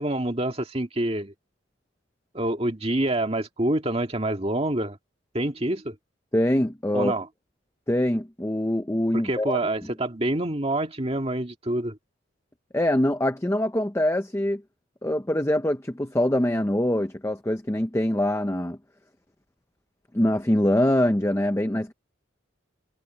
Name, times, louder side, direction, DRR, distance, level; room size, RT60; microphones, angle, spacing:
voice 1, 0.0-1.3 2.3-5.0 5.3-6.0 6.9-7.3 9.1-12.0, right 1 dB, 30° right, 2.0 m, -26 dB
voice 2, 6.3-7.1 7.9-9.6 12.7-14.6 15.0-18.8 20.1-21.9, left 1 dB, 15° left, 0.6 m, -24 dB
head